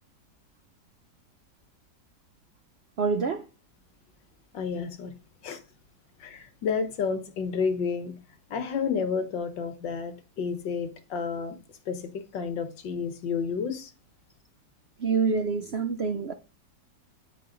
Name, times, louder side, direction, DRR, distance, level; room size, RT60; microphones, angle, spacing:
voice 1, 3.0-3.5 15.0-16.3, right 5 dB, 65° right, 0.6 m, -26 dB
voice 2, 4.5-5.1 5.4-5.6 6.2-8.2 8.5-11.6 11.9-13.9, left 5 dB, 80° left, 1.9 m, -30 dB
13.5 x 4.8 x 3.8 m
omnidirectional pair, 1.9 m